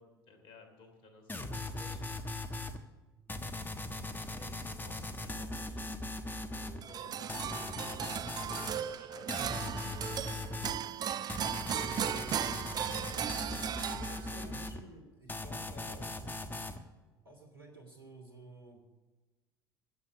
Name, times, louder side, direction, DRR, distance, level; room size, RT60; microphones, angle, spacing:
voice 1, 0.0-2.0 3.9-5.8 6.8-7.6 8.4-11.0 14.3-14.6, left 3 dB, 55° left, 5 dB, 3.1 m, -56 dB
sound 1, 1.3-2.8 3.3-6.8 7.3-8.8 9.3-10.8 11.3-14.8 15.3-16.8, left 2 dB, 15° left, 1.3 m, -39 dB
voice 2, 6.4-8.1 13.9-16.1 17.2-18.8, right 2 dB, 90° right, 0 dB, 2.9 m, -53 dB
sound 2, 6.8-14.5, right 9 dB, 35° right, 0.5 m, -37 dB
16.0 x 7.9 x 6.9 m, 1.2 s
figure-of-eight pair, 65°, 12 cm